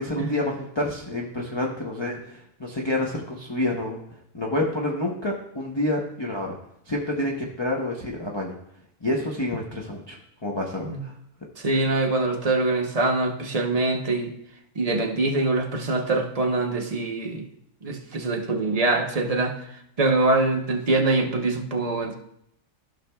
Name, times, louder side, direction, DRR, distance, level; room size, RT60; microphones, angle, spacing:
voice 1, 0.0-4.0 4.3-6.6 6.9-8.6 9.0-11.1, left 1 dB, 25° left, -2 dB, 0.7 m, -28 dB
voice 2, 11.6-14.3 14.7-17.5 17.8-19.6 20.0-22.2, right 2 dB, 30° right, 1 dB, 0.9 m, -24 dB
14.5 x 6.1 x 2.3 m, 0.76 s
omnidirectional pair, 1.4 m